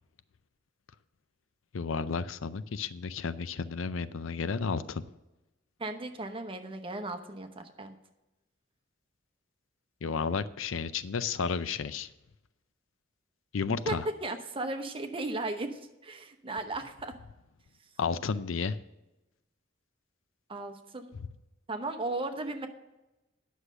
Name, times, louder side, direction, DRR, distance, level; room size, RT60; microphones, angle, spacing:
voice 1, 1.7-5.0 10.0-12.1 13.5-14.1 18.0-18.8, left 5 dB, 80° left, 15 dB, 0.5 m, -32 dB
voice 2, 5.8-7.9 13.7-17.1 20.5-21.1 21.7-22.7, right 2 dB, 30° right, 6 dB, 0.9 m, -36 dB
9.8 x 6.4 x 6.6 m, 0.99 s
head